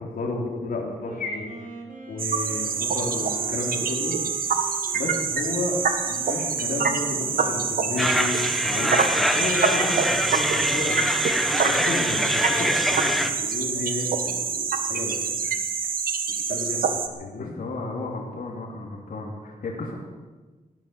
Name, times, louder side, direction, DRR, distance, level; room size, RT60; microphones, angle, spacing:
voice 1, 0.0-1.5 2.1-4.1 4.9-5.8 6.1-15.6 16.5-17.5, left 3 dB, 90° left, -1 dB, 3.2 m, -32 dB
Wind instrument woodwind instrument, 0.9-8.1, right 4 dB, 60° right, 3.9 m, -43 dB
sound 1, 2.2-17.1, right 6 dB, 80° right, 1.5 m, -26 dB
sound 2, 8.0-13.3, equal, ahead, 1.3 m, -24 dB
voice 2, 17.4-19.9, left 3 dB, 70° left, -1 dB, 2.9 m, -34 dB
17.5 x 11.5 x 6.8 m, 1.3 s
wide cardioid pair, 95°, 15 cm